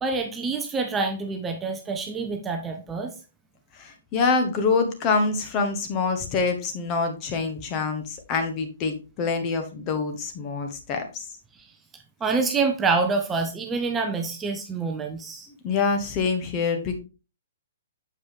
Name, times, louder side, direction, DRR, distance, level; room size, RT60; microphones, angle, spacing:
voice 1, 0.0-3.1 12.2-15.5, right 4 dB, 15° right, 5 dB, 0.8 m, -26 dB
voice 2, 3.7-11.2 15.6-17.0, left 4 dB, 30° left, 6 dB, 1.4 m, -26 dB
7.4 x 5.2 x 3.5 m, 0.31 s
figure-of-eight pair, 120°, 0 cm